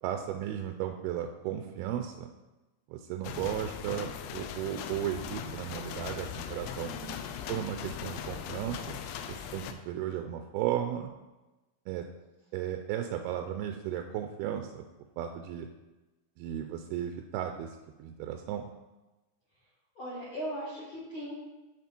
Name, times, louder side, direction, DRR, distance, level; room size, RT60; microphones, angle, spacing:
voice 1, 0.0-2.3 2.9-6.9 7.5-9.0 9.3-11.1 11.9-12.1 12.5-14.8 15.2-15.7 16.4-17.7 18.0-18.7, right 10 dB, 80° right, 6 dB, 2.4 m, -35 dB
sound 1, 3.2-9.7, left 8 dB, 90° left, 2.8 m, -39 dB
voice 2, 6.8-7.1 19.9-21.3, right 1 dB, 45° left, -7 dB, 1.8 m, -38 dB
9.3 x 5.6 x 4.4 m, 1.1 s
omnidirectional pair, 4.7 m